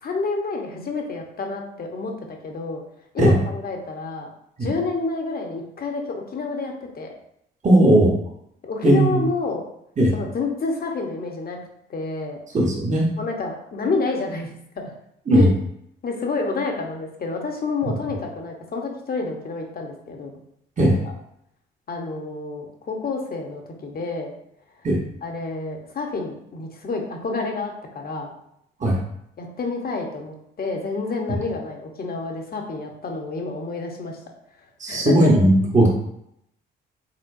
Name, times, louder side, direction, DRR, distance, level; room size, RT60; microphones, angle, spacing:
voice 1, 0.0-2.8 3.1-4.3 4.6-7.1 8.6-9.7 10.1-11.6 11.9-12.4 13.2-14.9 15.3-15.5 16.0-20.4 20.8-20.9 21.9-24.3 25.2-28.3 29.4-34.2 34.9-35.1, left 3 dB, 45° left, 2 dB, 1.0 m, -29 dB
voice 2, 7.6-8.2 8.8-9.2 10.0-10.1 12.5-13.1 15.3-15.5 20.8-20.9 24.8-25.0 28.8-29.0 34.8-35.9, right 1 dB, 35° right, -2 dB, 1.1 m, -17 dB
4.3 x 3.7 x 2.6 m, 0.76 s
supercardioid pair, 60°, 21 cm